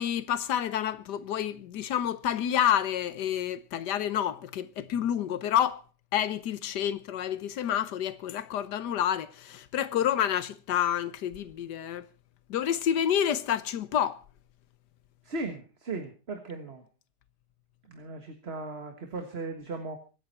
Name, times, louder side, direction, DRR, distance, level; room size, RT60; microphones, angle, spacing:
voice 1, 0.0-5.8 6.1-12.0 12.5-14.2, left 10 dB, 85° left, 1.5 m, -29 dB
voice 2, 15.2-16.8 17.9-20.0, right 3 dB, 40° right, 1.8 m, -37 dB
24.0 x 9.9 x 4.4 m
omnidirectional pair, 1.8 m